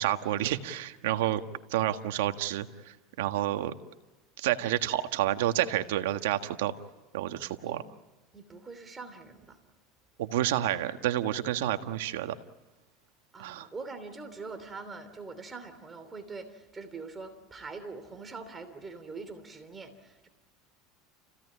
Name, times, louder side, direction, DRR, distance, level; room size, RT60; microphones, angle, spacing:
voice 1, 0.0-1.4 1.7-3.7 4.4-6.7 7.1-7.8 10.2-12.3 13.4-13.7, right 13 dB, 85° right, 8 dB, 1.5 m, -29 dB
voice 2, 8.3-9.6 13.3-20.3, right 4 dB, 20° right, 8 dB, 3.0 m, -43 dB
30.0 x 16.5 x 9.7 m, 1.1 s
supercardioid pair, 125°, 0 cm